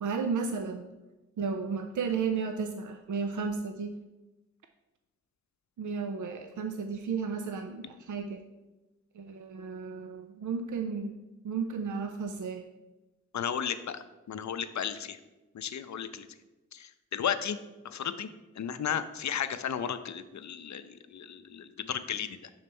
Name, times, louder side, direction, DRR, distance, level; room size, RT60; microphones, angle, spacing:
voice 1, 0.0-0.9 1.4-3.9 5.8-8.4 9.2-11.1 11.4-12.7, right 5 dB, 75° right, 6 dB, 0.5 m, -33 dB
voice 2, 13.3-15.2 15.5-16.3 16.7-17.6 17.8-18.3 18.6-22.4, left 8 dB, 65° left, 11 dB, 0.5 m, -34 dB
7.0 x 3.2 x 5.3 m, 1.1 s
cardioid pair, 55°, 30 cm